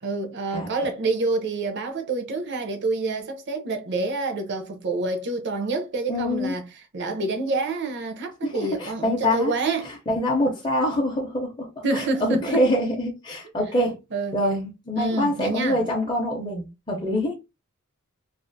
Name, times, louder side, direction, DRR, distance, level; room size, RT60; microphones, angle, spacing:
voice 1, 0.0-6.7 6.9-9.9 11.8-12.6 14.1-14.6 15.0-15.8, right 3 dB, 55° right, 0.6 m, -27 dB
voice 2, 6.1-6.6 8.4-9.5 9.8-14.0 14.3-17.3, left 1 dB, 20° left, 0.5 m, -25 dB
2.4 x 2.4 x 2.5 m
head